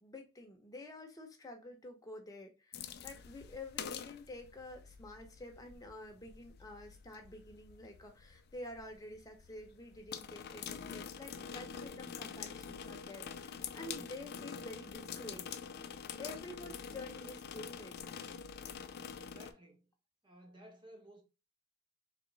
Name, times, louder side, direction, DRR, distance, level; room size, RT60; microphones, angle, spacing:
voice 1, 0.0-15.5 15.9-18.0, left 1 dB, 15° left, 0.8 m, -49 dB
sound 1, 2.7-19.5, left 7 dB, 50° left, 0.4 m, -46 dB
voice 2, 13.9-14.3 16.4-16.8 18.9-19.9 20.2-21.2, right 1 dB, 25° right, 0.9 m, -58 dB
3.0 x 3.0 x 3.9 m
head